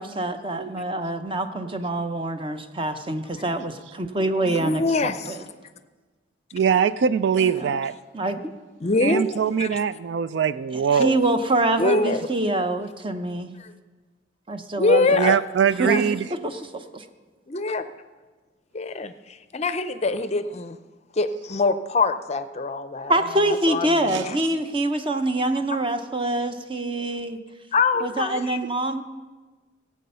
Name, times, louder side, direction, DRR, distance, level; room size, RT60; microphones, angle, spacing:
voice 1, 0.0-5.4 7.6-7.8 8.1-8.4 10.7-13.5 14.5-15.2 15.8-15.9 16.4-17.1 23.1-27.4 28.0-29.0, right 2 dB, 25° right, 0.7 m, -25 dB
voice 2, 0.6-1.0 3.4-3.5 6.5-7.9 9.0-11.2 15.1-16.3 24.1-24.2, right 7 dB, 60° right, 0.3 m, -22 dB
voice 3, 4.4-5.5 7.4-7.5 8.8-9.2 9.6-9.8 11.8-12.3 13.6-13.7 14.8-15.4 15.8-16.0 17.5-17.8 18.7-20.8 21.1-24.4 27.7-28.6, left 3 dB, 35° left, 0.5 m, -24 dB
16.5 x 8.4 x 5.6 m
head